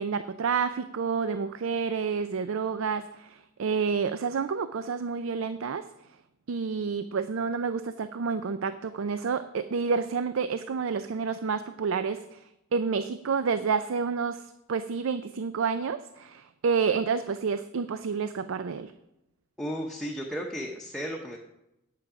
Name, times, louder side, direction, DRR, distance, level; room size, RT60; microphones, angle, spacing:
voice 1, 0.0-5.9 6.5-12.4 12.7-18.9, right 5 dB, 70° right, 12 dB, 0.4 m, -29 dB
voice 2, 19.6-21.4, equal, ahead, -1 dB, 0.8 m, -34 dB
9.1 x 8.4 x 4.9 m, 0.88 s
head